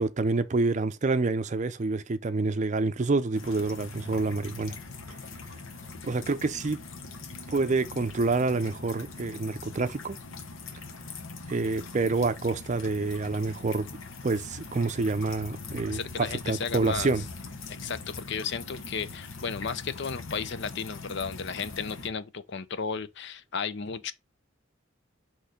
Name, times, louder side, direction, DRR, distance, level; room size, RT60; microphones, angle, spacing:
voice 1, 0.0-4.8 6.1-6.8 7.5-10.2 11.5-13.9 14.2-17.2, right 3 dB, 35° right, 0.5 m, -27 dB
Rain Drips, 3.4-22.1, left 3 dB, 80° left, 1.1 m, -42 dB
voice 2, 15.9-17.1 17.7-24.1, left 5 dB, 60° left, 0.6 m, -34 dB
6.2 x 3.2 x 4.9 m
head